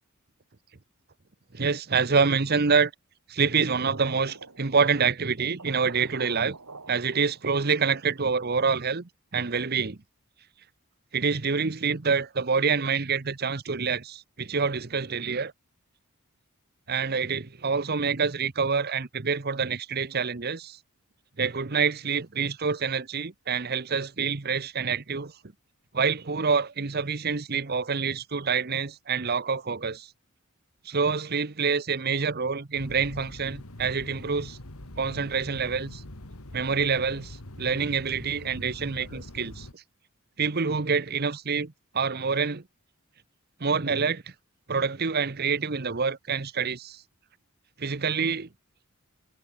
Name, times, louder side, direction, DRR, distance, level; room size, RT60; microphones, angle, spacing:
voice 1, 1.5-2.9 3.3-6.6 6.9-10.0 11.1-15.5 16.9-20.8 21.4-25.3 25.9-30.1 30.8-34.6 35.0-36.0 36.5-39.8 40.4-42.6 43.6-44.2 44.7-47.0 47.8-48.5, right 5 dB, 45° right, 0.9 m, -27 dB
sound 1, 3.7-5.0 5.3-5.4 5.6-7.8, right 3 dB, 85° right, 4.1 m, -46 dB
sound 2, 32.7-39.7, left 1 dB, 75° left, 2.7 m, -43 dB
head